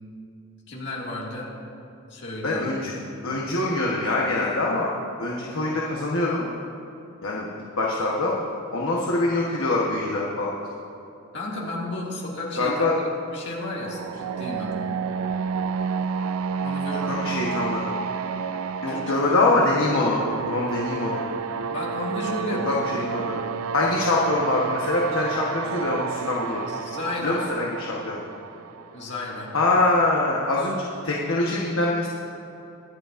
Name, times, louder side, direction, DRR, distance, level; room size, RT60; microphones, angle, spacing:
voice 1, 0.7-1.5 2.1-2.9 11.3-14.8 16.6-17.4 18.9-19.3 21.7-23.3 26.7-27.5 28.9-29.5, left 1 dB, 55° left, -4 dB, 2.1 m, -33 dB
voice 2, 2.4-2.9 3.2-4.9 5.2-6.5 7.2-7.5 7.8-8.4 8.7-10.5 12.6-13.0 17.0-17.9 18.8-20.2 20.5-21.2 22.6-22.7 23.1-23.4 23.7-26.6 27.2-28.2 29.5-32.1, left 2 dB, 80° left, -4 dB, 1.1 m, -24 dB
sound 1, 13.7-29.6, right 6 dB, 90° right, 0.4 m, -30 dB
23.5 x 8.0 x 2.5 m, 2.8 s
head